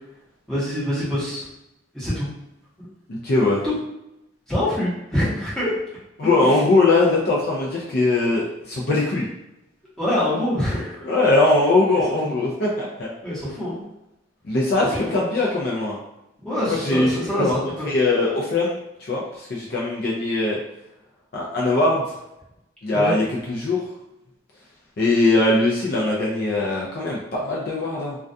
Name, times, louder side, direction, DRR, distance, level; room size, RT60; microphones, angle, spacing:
voice 1, 0.5-1.5 1.9-2.3 2.8-2.9 3.6-3.7 4.5-5.7 6.4-6.6 10.0-11.0 12.2-12.3 13.2-13.8 14.9-15.2 16.4-17.9 22.9-23.1, left 1 dB, 5° left, -10 dB, 0.9 m, -25 dB
voice 2, 3.1-3.6 6.2-9.3 11.0-13.1 14.4-16.0 16.7-17.5 17.8-20.6 21.3-22.0 22.8-23.8 25.0-28.2, left 2 dB, 50° left, -4 dB, 0.4 m, -21 dB
2.3 x 2.2 x 2.5 m, 0.88 s
head